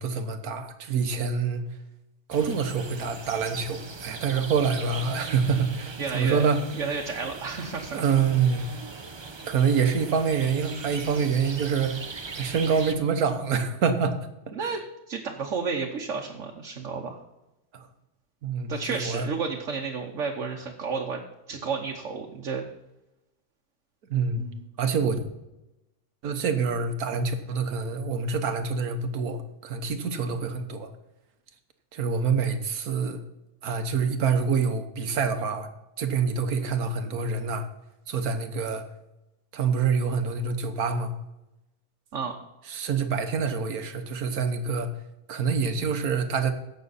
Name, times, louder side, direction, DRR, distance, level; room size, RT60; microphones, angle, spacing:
voice 1, 0.0-1.6 2.3-6.6 7.9-8.6 9.4-12.0 12.3-14.1 14.6-14.8 17.7-17.9 18.4-19.3 24.1-24.4 24.8-25.2 26.2-30.9 31.9-33.2 33.6-35.7 36.0-37.7 38.1-38.8 39.5-41.1 42.7-44.9 45.3-46.5, right 5 dB, 85° right, 8 dB, 1.6 m, -26 dB
sound 1, 2.3-12.9, right 3 dB, 35° right, 0.5 m, -40 dB
voice 2, 6.0-6.5 6.8-8.2 14.5-14.8 15.1-17.2 18.7-21.2 21.5-22.6 24.4-24.6 42.1-42.3, right 5 dB, 60° right, 1 dB, 1.3 m, -31 dB
16.0 x 6.4 x 4.1 m, 0.94 s
omnidirectional pair, 1.5 m